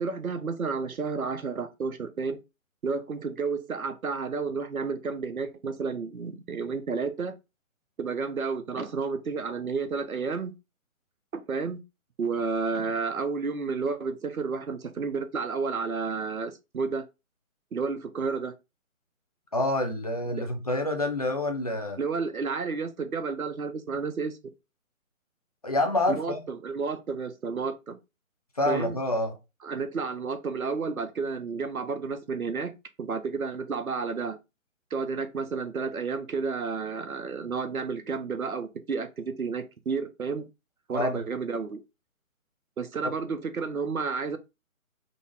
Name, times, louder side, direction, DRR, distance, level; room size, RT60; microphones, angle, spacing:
voice 1, 0.0-2.4 2.8-7.3 8.0-10.5 11.3-11.8 12.2-17.0 17.7-18.5 20.4-20.5 22.0-24.4 26.2-28.0 28.7-29.0 29.6-32.7 33.0-34.4 34.9-40.5 40.9-41.8 42.8-44.4, right 4 dB, 85° right, 0.8 m, -31 dB
voice 2, 19.5-22.0 25.6-26.4 28.6-29.4 40.9-41.2, left 2 dB, 30° left, 0.4 m, -27 dB
3.9 x 2.4 x 3.4 m
figure-of-eight pair, 140°, 41 cm